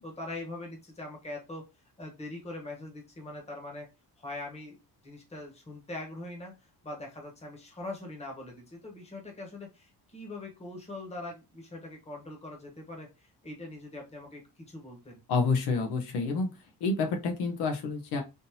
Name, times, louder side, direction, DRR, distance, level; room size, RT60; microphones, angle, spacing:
voice 1, 0.0-1.7 2.0-3.9 4.2-4.8 5.0-15.2, left 2 dB, 15° left, 0 dB, 1.1 m, -42 dB
voice 2, 15.3-16.5 16.8-18.2, left 4 dB, 80° left, 3 dB, 0.9 m, -28 dB
3.6 x 2.7 x 2.8 m, 0.26 s
cardioid pair, 150°, 39 cm